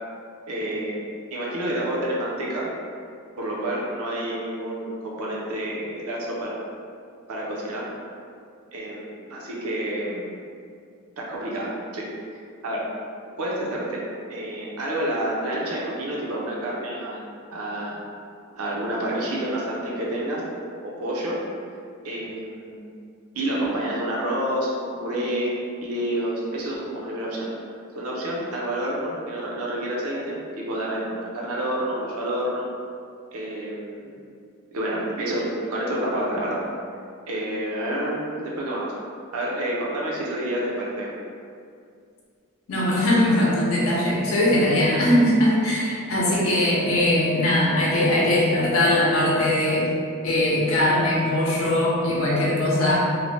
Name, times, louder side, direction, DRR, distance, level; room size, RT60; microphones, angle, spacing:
voice 1, 0.5-1.0 1.3-2.7 3.4-6.6 7.3-7.9 8.7-10.3 11.2-12.1 12.6-12.9 13.4-14.0 14.3-17.3 17.5-18.0 18.5-20.4 20.8-21.4 22.0-22.9 23.3-25.5 25.8-27.5 28.0-32.7 33.3-34.1 34.7-36.6 37.3-38.9 39.3-41.1, right 1 dB, 85° right, -4 dB, 0.6 m, -28 dB
voice 2, 42.7-49.9 50.2-53.0, left 1 dB, 65° left, -5 dB, 0.6 m, -20 dB
2.7 x 2.1 x 3.1 m, 2.3 s
head